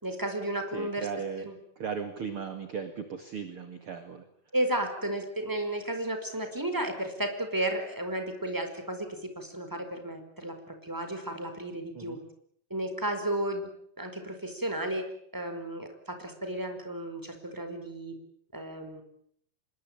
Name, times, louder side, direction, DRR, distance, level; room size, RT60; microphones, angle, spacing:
voice 1, 0.0-1.1 1.4-1.5 4.5-10.5 10.8-12.2 12.7-13.7 14.0-15.1 15.3-18.1 18.5-19.0, right 1 dB, 5° right, 6 dB, 4.4 m, -33 dB
voice 2, 0.7-4.3 11.9-12.2, right 6 dB, 45° right, 8 dB, 2.1 m, -37 dB
26.0 x 22.0 x 9.0 m, 0.68 s
omnidirectional pair, 4.9 m